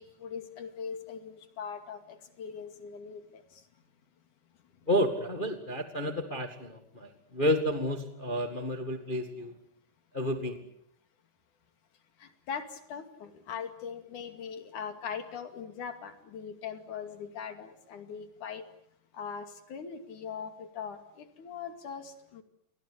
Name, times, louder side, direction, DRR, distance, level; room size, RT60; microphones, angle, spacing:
voice 1, 0.0-3.6 12.2-18.7 19.1-22.4, left 6 dB, 75° left, 8 dB, 3.9 m, -41 dB
voice 2, 4.9-9.6 10.1-10.6, equal, 20° left, 6 dB, 1.7 m, -31 dB
30.0 x 23.0 x 8.3 m, 0.70 s
omnidirectional pair, 3.6 m